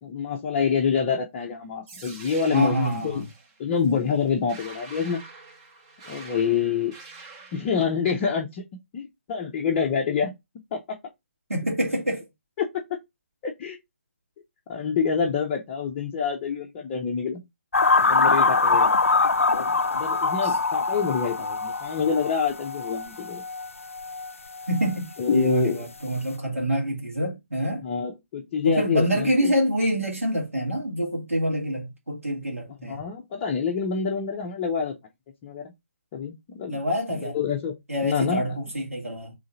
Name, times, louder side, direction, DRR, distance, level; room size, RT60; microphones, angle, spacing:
voice 1, 0.0-3.2 3.6-5.2 6.0-6.9 7.5-8.6 8.9-10.3 10.7-11.0 12.6-12.8 13.4-13.8 14.7-17.4 18.0-18.9 19.5-23.4 25.2-25.8 27.8-29.5 32.8-34.9 35.4-35.6 36.1-36.8 37.3-37.7 38.0-38.6, left 6 dB, 20° left, 0.5 m, -26 dB
sound 1, 1.9-7.8, right 3 dB, 20° right, 0.8 m, -46 dB
voice 2, 2.5-3.3 11.5-12.3 20.4-20.6 24.7-27.8 28.6-33.0 36.7-37.4 37.9-39.3, equal, 80° right, 1.7 m, -26 dB
sound 2, 17.7-25.0 25.3-25.6, left 4 dB, 75° left, 0.4 m, -24 dB
3.8 x 3.1 x 3.9 m
figure-of-eight pair, 140°, 7 cm